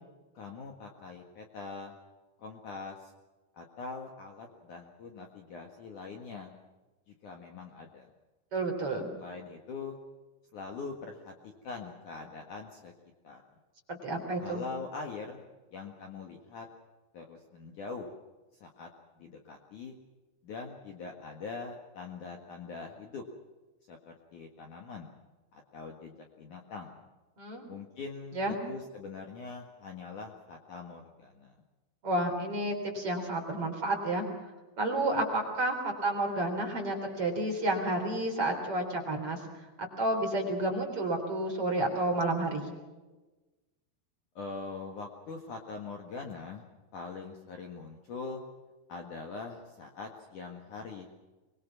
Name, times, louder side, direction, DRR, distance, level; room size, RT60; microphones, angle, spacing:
voice 1, 0.3-2.0 2.4-3.1 3.5-6.5 7.1-8.1 9.2-10.0 10.5-12.9 13.2-13.4 14.4-15.4 15.7-16.7 17.1-18.1 18.6-18.9 19.2-20.0 20.4-23.2 23.9-25.1 25.5-27.0 27.7-31.6 44.4-46.6 46.9-48.4 48.9-51.1, left 4 dB, 55° left, 2 dB, 2.7 m, -43 dB
voice 2, 8.5-9.1 13.9-14.6 27.4-27.7 28.4-28.6 32.0-34.2 34.8-39.4 40.0-42.7, right 1 dB, 30° right, 2 dB, 4.4 m, -30 dB
24.0 x 22.5 x 6.0 m, 1.2 s
omnidirectional pair, 5.4 m